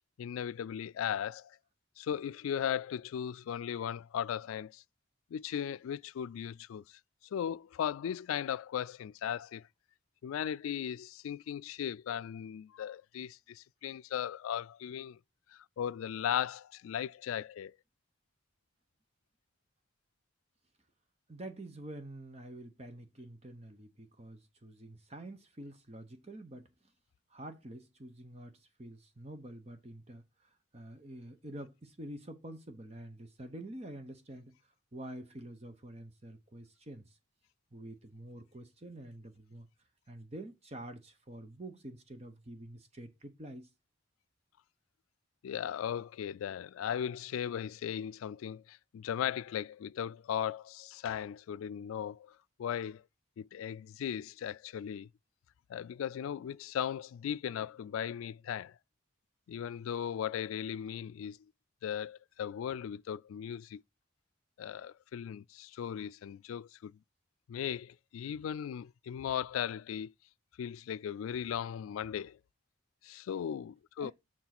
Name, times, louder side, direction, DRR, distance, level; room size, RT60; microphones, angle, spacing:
voice 1, 0.2-1.6 2.0-4.8 5.3-7.0 7.3-9.6 10.2-15.2 15.5-17.8 45.4-53.0 53.4-55.1 55.7-58.7 59.5-61.4 61.8-63.8 64.6-66.9 67.5-70.1 70.6-72.4 73.0-74.1, left 9 dB, 90° left, 0.3 m, -37 dB
voice 2, 21.3-26.7 27.3-34.6 34.9-37.2 37.7-39.7 40.1-43.7 74.0-74.1, right 1 dB, 30° right, 0.9 m, -47 dB
7.2 x 3.7 x 5.9 m
head